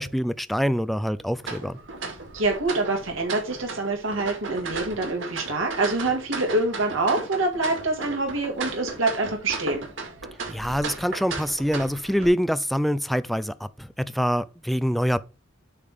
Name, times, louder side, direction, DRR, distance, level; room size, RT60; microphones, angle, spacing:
voice 1, 0.0-1.8 10.5-15.2, equal, ahead, 0.3 m, -25 dB
sound 1, 1.4-12.3, right 3 dB, 70° right, 2.2 m, -36 dB
voice 2, 2.3-9.8, right 2 dB, 85° right, 2.0 m, -26 dB
8.5 x 3.6 x 6.4 m
head